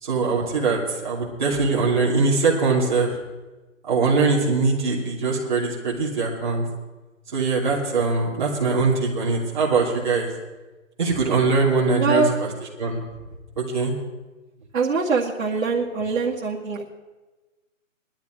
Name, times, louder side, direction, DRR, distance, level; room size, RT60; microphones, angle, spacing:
voice 1, 0.0-3.1 3.9-6.6 7.3-10.3 11.0-12.5 12.8-13.0 13.6-13.9, right 4 dB, 35° right, -5 dB, 2.9 m, -22 dB
voice 2, 11.9-12.3 14.7-16.9, right 4 dB, 80° right, -5 dB, 2.2 m, -23 dB
19.0 x 12.0 x 4.7 m, 1.2 s
hypercardioid pair, 175°, 39 cm